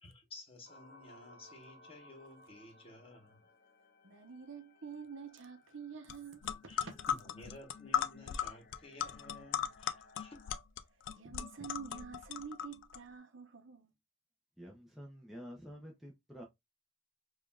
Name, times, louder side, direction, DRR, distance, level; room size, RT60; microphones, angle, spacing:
voice 1, 0.0-3.5 6.7-10.4, left 2 dB, 30° left, 1.1 m, -54 dB
sound 1, 0.6-10.6, left 2 dB, 50° left, 0.8 m, -62 dB
voice 2, 4.0-6.9 11.1-13.9, right 6 dB, 70° right, 0.7 m, -48 dB
sound 2, 6.1-6.2 6.4-13.0, left 8 dB, 65° left, 0.4 m, -37 dB
voice 3, 14.6-16.4, equal, ahead, 0.6 m, -49 dB
4.9 x 2.4 x 2.3 m
head